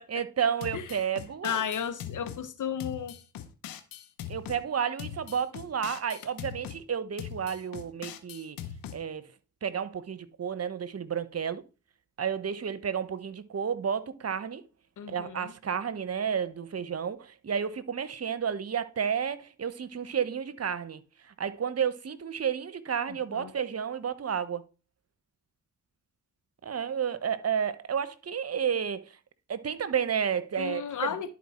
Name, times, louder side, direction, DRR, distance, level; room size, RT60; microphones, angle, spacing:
voice 1, 0.1-1.6 4.3-8.6 8.9-9.2 9.6-11.6 12.2-14.6 15.1-21.0 21.3-24.6 26.6-29.0 29.5-31.1, right 7 dB, 45° right, 0.9 m, -31 dB
sound 1, 0.6-2.4 2.8-4.6 5.0-6.8 7.2-9.0, left 9 dB, 85° left, 1.0 m, -41 dB
voice 2, 1.4-3.1 15.0-15.5 23.1-23.5 30.6-31.3, left 8 dB, 65° left, 1.3 m, -34 dB
11.0 x 4.4 x 4.3 m
supercardioid pair, 45°, 34 cm